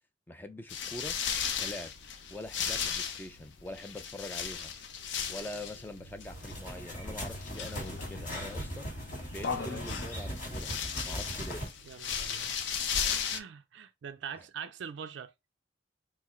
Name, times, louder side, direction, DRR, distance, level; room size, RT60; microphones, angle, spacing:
voice 1, 0.3-1.1 1.6-1.9 2.3-4.7 5.3-8.9 9.3-10.7 11.0-11.6, left 1 dB, 10° left, 0.4 m, -43 dB
sound 1, 0.7-13.4, left 7 dB, 70° left, 0.6 m, -36 dB
sound 2, 6.2-11.7, equal, 45° left, 2.2 m, -39 dB
voice 2, 11.9-12.8 13.3-15.3, right 7 dB, 70° right, 0.4 m, -44 dB
4.7 x 2.0 x 4.2 m
head